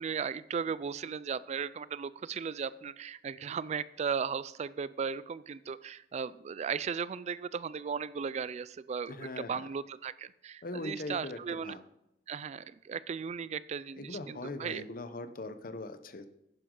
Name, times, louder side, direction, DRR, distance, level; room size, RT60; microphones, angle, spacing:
voice 1, 0.0-11.8 12.3-14.8, right 6 dB, 40° right, 17 dB, 0.3 m, -36 dB
voice 2, 9.1-9.6 10.6-11.8 14.0-16.3, left 2 dB, 55° left, 11 dB, 0.8 m, -40 dB
11.5 x 9.9 x 3.8 m, 0.82 s
head